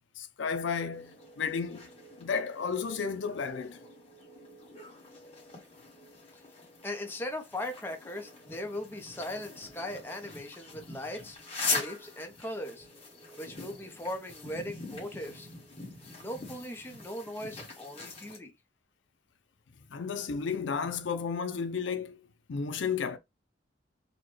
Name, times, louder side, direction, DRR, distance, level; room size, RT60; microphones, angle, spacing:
voice 1, 0.0-1.9 2.2-3.8 19.9-22.2 22.5-23.2, left 5 dB, 75° left, 0.5 m, -33 dB
Mysound gwaetoy bird&dog, 0.9-18.4, left 4 dB, 30° left, 1.4 m, -42 dB
voice 2, 6.8-12.9 13.4-15.5 16.1-18.5, left 1 dB, 10° left, 0.6 m, -39 dB
4.1 x 2.2 x 3.1 m
head